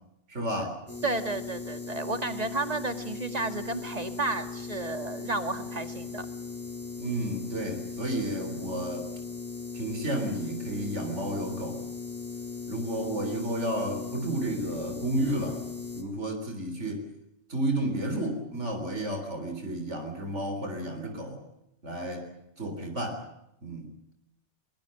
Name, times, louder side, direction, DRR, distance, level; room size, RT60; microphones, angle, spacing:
voice 1, 0.3-0.8 7.0-9.1 9.7-11.8 12.7-15.6 16.0-17.0 17.5-21.4 21.8-22.3 22.6-23.2 23.6-23.9, right 1 dB, 85° right, 5 dB, 4.1 m, -32 dB
sound 1, 0.9-16.0, left 4 dB, 10° left, 4.1 m, -38 dB
voice 2, 1.0-6.3, right 2 dB, 35° right, 9 dB, 2.1 m, -32 dB
22.5 x 21.5 x 7.7 m, 0.81 s
omnidirectional pair, 1.2 m